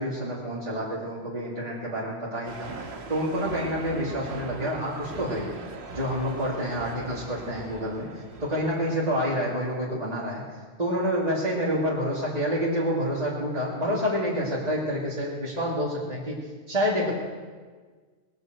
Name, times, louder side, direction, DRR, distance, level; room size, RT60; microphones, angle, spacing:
voice 1, 0.0-2.7 3.1-5.6 5.9-10.4 10.8-16.4 16.7-17.1, equal, 35° right, -7 dB, 2.7 m, -28 dB
sound 1, 2.4-9.5, right 3 dB, 65° right, 1.4 m, -41 dB
20.0 x 7.8 x 7.9 m, 1.5 s
omnidirectional pair, 1.2 m